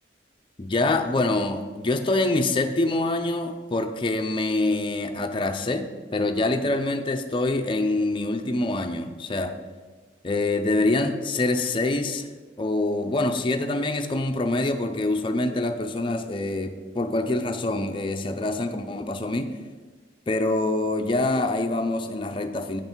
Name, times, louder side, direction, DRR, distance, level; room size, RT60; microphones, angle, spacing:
voice 1, 0.6-9.6 10.2-12.3 12.6-19.5 20.3-22.8, left 2 dB, 30° left, 5 dB, 0.5 m, -25 dB
8.8 x 5.6 x 4.5 m, 1.3 s
head